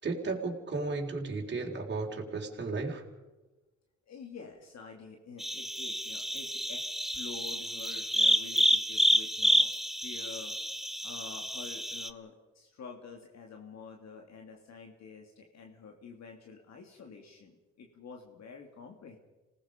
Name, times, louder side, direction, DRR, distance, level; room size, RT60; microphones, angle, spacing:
voice 1, 0.0-3.0, right 3 dB, 35° right, 0 dB, 4.1 m, -34 dB
voice 2, 4.1-9.7 10.0-10.5 11.0-19.2, left 5 dB, 60° left, 2 dB, 2.7 m, -48 dB
sound 1, 5.4-12.1, equal, ahead, 0.9 m, -29 dB
27.5 x 18.5 x 5.2 m, 1.1 s
cardioid pair, 90°, 30 cm